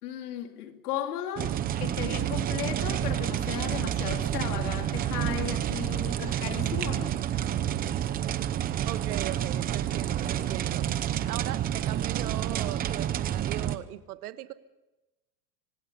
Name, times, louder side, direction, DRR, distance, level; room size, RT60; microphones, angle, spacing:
voice 1, 0.0-7.2, left 10 dB, 80° left, 2.8 m, -36 dB
sound 1, 1.3-13.8, right 11 dB, 20° right, 0.8 m, -29 dB
voice 2, 8.9-10.9 11.3-14.5, right 14 dB, 75° right, 1.6 m, -39 dB
25.5 x 19.0 x 5.4 m
supercardioid pair, 155°, 45 cm